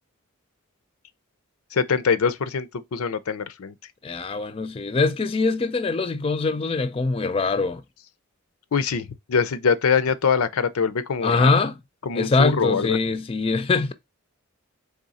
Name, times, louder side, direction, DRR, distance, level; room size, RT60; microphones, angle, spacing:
voice 1, 1.7-3.7 8.7-11.5 12.0-13.0, left 5 dB, 80° left, 0.5 m, -23 dB
voice 2, 4.0-7.8 11.2-11.8 12.2-13.9, left 3 dB, 25° left, 0.4 m, -23 dB
3.7 x 3.5 x 4.1 m
head